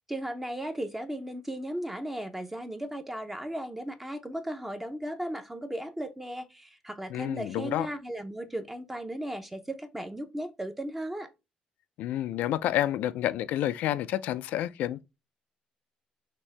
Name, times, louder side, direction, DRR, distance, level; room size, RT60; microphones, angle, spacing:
voice 1, 0.1-11.3, right 1 dB, 10° right, 0.7 m, -36 dB
voice 2, 7.1-7.9 12.0-15.0, left 13 dB, 85° left, 0.4 m, -29 dB
5.9 x 2.7 x 3.3 m
cardioid pair, 105°, 3 cm